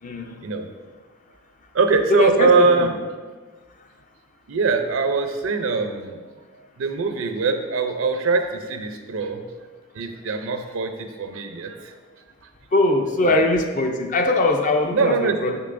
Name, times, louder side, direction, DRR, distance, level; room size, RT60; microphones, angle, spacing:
voice 1, 0.0-0.4 2.1-2.9 12.7-15.6, left 2 dB, 35° left, 4 dB, 0.5 m, -21 dB
voice 2, 1.7-2.9 4.5-6.2 6.8-9.4 9.9-11.9 13.2-13.5 14.9-15.4, right 4 dB, 70° right, 6 dB, 0.5 m, -22 dB
6.7 x 6.1 x 2.6 m, 1.4 s
head